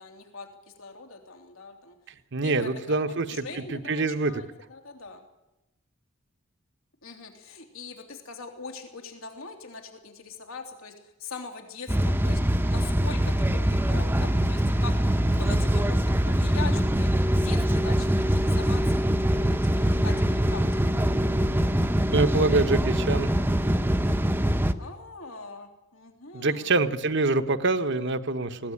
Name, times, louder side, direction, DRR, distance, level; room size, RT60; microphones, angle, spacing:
voice 1, 0.0-2.0 2.4-5.2 7.0-12.4 12.7-15.0 15.4-21.1 24.8-26.7, left 4 dB, 80° left, 4 dB, 3.2 m, -42 dB
voice 2, 2.3-3.4 3.7-4.3 22.1-23.3 26.3-28.7, right 3 dB, 60° right, 9 dB, 1.2 m, -25 dB
sound 1, 11.9-24.7, equal, 10° right, 0.9 m, -23 dB
21.0 x 17.0 x 10.0 m, 0.95 s
head